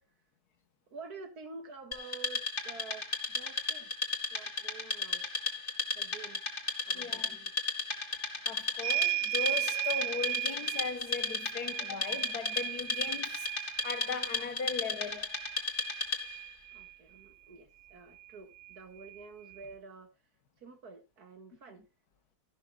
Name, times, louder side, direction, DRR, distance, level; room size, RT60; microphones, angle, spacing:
voice 1, 0.9-3.9 4.3-5.2 5.9-6.5 6.9-7.5 16.7-20.1 20.6-21.8, right 4 dB, 85° right, 2.4 m, -49 dB
Wood, 1.9-16.5, left 3 dB, 35° left, 2.4 m, -35 dB
voice 2, 6.9-7.4 8.5-15.3, left 5 dB, 85° left, 1.8 m, -38 dB
sound 1, 8.8-16.9 18.2-18.3 18.6-19.7, right 16 dB, 45° right, 1.1 m, -36 dB
14.0 x 11.5 x 2.4 m
omnidirectional pair, 1.6 m